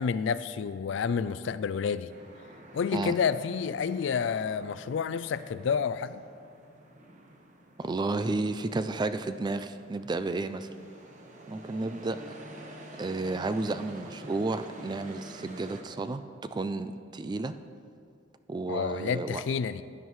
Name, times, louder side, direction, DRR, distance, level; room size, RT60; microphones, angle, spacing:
voice 1, 0.0-2.1 2.7-6.2 18.7-19.8, left 6 dB, 65° left, 14 dB, 0.3 m, -29 dB
sound 1, 2.1-15.8, right 1 dB, 40° right, 1.1 m, -49 dB
voice 2, 7.8-10.7 11.5-12.4 13.0-16.2 16.5-17.5 18.5-19.4, right 3 dB, 20° right, 11 dB, 0.3 m, -32 dB
15.5 x 9.6 x 3.1 m, 2.3 s
head